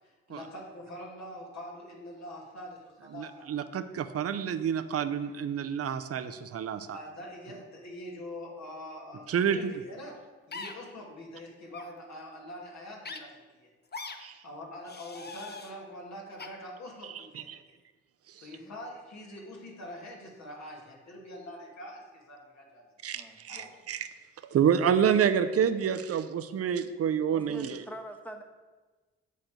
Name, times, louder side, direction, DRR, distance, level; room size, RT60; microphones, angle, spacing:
voice 1, 0.0-3.5 6.9-10.2 10.5-13.7 14.4-17.8 18.4-22.9 23.5-23.7, left 1 dB, 60° left, -2 dB, 2.6 m, -44 dB
voice 2, 3.1-7.0 9.3-9.7 14.2-14.4 17.5-17.6 23.0-24.1 24.5-27.8, right 8 dB, 50° right, 11 dB, 0.7 m, -28 dB
sound 1, 10.5-10.7 11.7-11.9 13.0-13.2 13.9-14.2 14.8-15.7 16.4-16.5, left 4 dB, 30° left, 1.0 m, -41 dB
voice 3, 18.4-18.8 23.1-23.7 27.3-28.4, equal, 5° left, 4 dB, 1.5 m, -45 dB
8.2 x 4.3 x 6.7 m, 1.3 s
hypercardioid pair, 40°, 31 cm